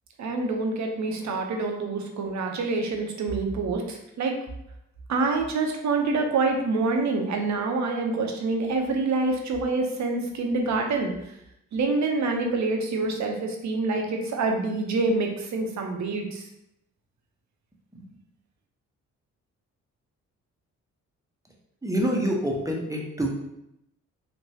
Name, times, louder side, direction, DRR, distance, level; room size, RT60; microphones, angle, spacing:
voice 1, 0.2-4.3 5.1-11.1 11.7-16.4, right 3 dB, 50° right, 3 dB, 0.7 m, -26 dB
voice 2, 21.8-23.3, equal, 10° right, 0 dB, 0.8 m, -26 dB
3.0 x 2.5 x 2.8 m, 0.81 s
hypercardioid pair, 45°, 37 cm